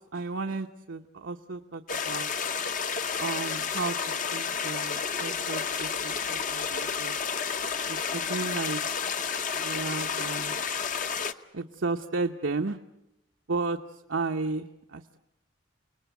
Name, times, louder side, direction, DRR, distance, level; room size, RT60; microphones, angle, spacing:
voice 1, 0.1-2.3 3.2-4.0 4.3-7.1 7.9-8.8 9.5-10.6 11.5-12.8 13.5-15.2, right 3 dB, 75° right, 4 dB, 0.9 m, -33 dB
sound 1, 1.9-11.3, left 6 dB, 40° left, 0.9 m, -31 dB
29.5 x 19.5 x 8.3 m, 0.91 s
head